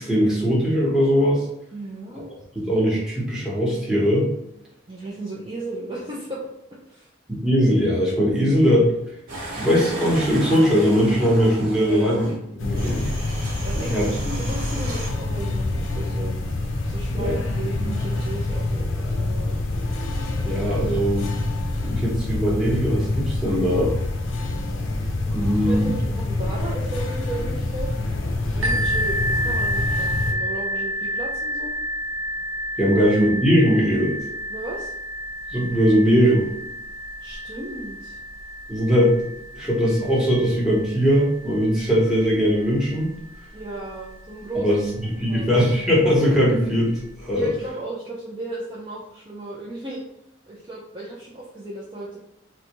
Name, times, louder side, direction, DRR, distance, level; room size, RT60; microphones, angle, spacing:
voice 1, 0.0-1.4 2.1-2.2 2.5-4.3 7.3-8.9 9.6-12.3 12.6-13.1 13.9-14.1 17.1-17.4 20.4-21.3 21.8-23.9 25.3-25.9 32.8-34.2 35.5-36.5 38.7-43.1 44.5-46.9 47.2-47.5, equal, 5° right, -5 dB, 0.9 m, -20 dB
voice 2, 1.7-2.3 4.9-6.5 6.9-7.1 11.8-12.2 12.6-12.8 13.6-19.6 25.6-27.9 28.5-31.8 32.8-33.1 34.5-34.9 37.2-38.2 43.5-44.7 45.2-45.5 47.3-50.0 50.5-52.2, right 2 dB, 25° right, -5 dB, 0.4 m, -35 dB
sound 1, 9.3-12.3 12.8-15.1, right 1 dB, 45° right, 1.1 m, -34 dB
sound 2, 12.6-30.3, left 2 dB, 70° left, 0.5 m, -26 dB
sound 3, 28.6-44.2 44.9-45.0 45.6-45.7, equal, 90° right, 0.7 m, -30 dB
3.9 x 2.2 x 2.9 m, 0.81 s
head